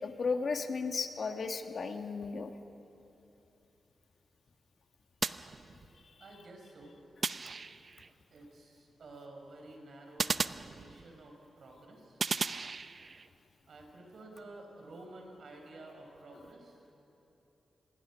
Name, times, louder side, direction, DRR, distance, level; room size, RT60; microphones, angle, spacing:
voice 1, 0.0-2.5 6.0-6.2 16.3-16.4, left 4 dB, 55° left, 6 dB, 1.4 m, -35 dB
sound 1, 5.2-6.1 7.2-8.1 10.2-11.3 12.2-13.3, right 4 dB, 45° right, 0.6 m, -36 dB
voice 2, 6.2-6.9 8.3-12.2 13.7-16.9, right 2 dB, 65° right, 2 dB, 5.2 m, -51 dB
27.0 x 21.0 x 6.2 m, 3.0 s
cardioid pair, 80°, 0 cm